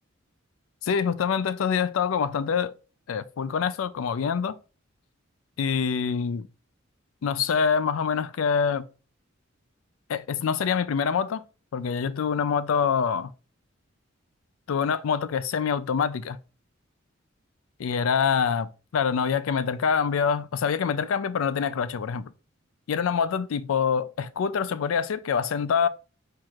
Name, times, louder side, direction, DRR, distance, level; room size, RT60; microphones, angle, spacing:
voice 1, 0.8-2.7 3.1-4.5 5.6-6.5 7.2-8.9 10.1-11.4 11.7-13.3 14.7-16.4 17.8-22.3 22.9-25.9, left 6 dB, 85° left, 0.4 m, -25 dB
4.6 x 2.4 x 4.3 m
head